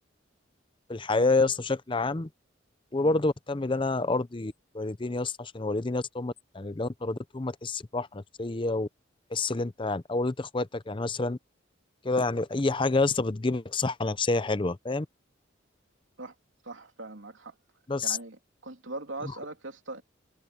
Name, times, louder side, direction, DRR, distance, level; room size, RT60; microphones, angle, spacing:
voice 1, 0.9-2.3 2.9-8.9 9.3-11.4 12.0-15.1 17.9-18.2, left 3 dB, 25° left, 0.6 m, -28 dB
voice 2, 16.6-17.5 18.0-20.0, right 2 dB, 85° right, 3.1 m, -41 dB
head